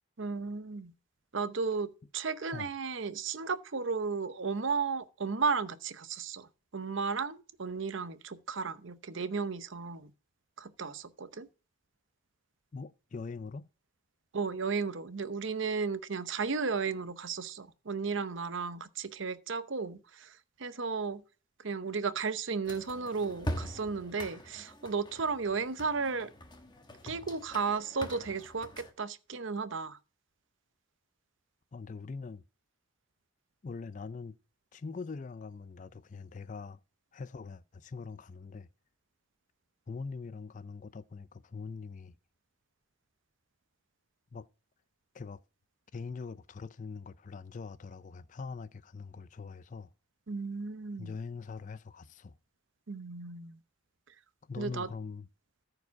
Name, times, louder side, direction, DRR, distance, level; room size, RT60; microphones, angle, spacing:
voice 1, 0.2-0.9 1.3-6.5 6.7-10.1 10.6-11.5 14.3-21.2 21.6-26.3 27.0-30.0 50.3-51.1 52.9-53.6 54.6-54.9, right 5 dB, 60° right, 0.7 m, -34 dB
voice 2, 12.7-13.7 31.7-32.4 33.6-34.4 34.7-36.8 37.1-38.7 39.9-42.1 44.3-44.5 45.1-45.4 45.9-49.9 51.0-52.3 54.5-55.3, left 4 dB, 35° left, 0.4 m, -42 dB
sound 1, 22.6-28.9, equal, 20° left, 1.1 m, -43 dB
14.0 x 4.9 x 4.7 m
head